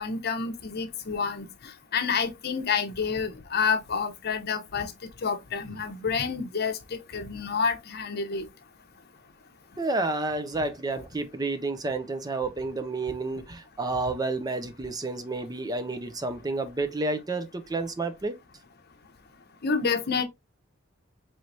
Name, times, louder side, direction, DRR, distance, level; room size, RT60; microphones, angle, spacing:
voice 1, 0.0-1.5 1.9-8.5 19.6-20.2, left 5 dB, 55° left, 0.8 m, -29 dB
voice 2, 9.8-18.4, right 2 dB, 20° right, 0.5 m, -30 dB
4.6 x 3.1 x 2.6 m
head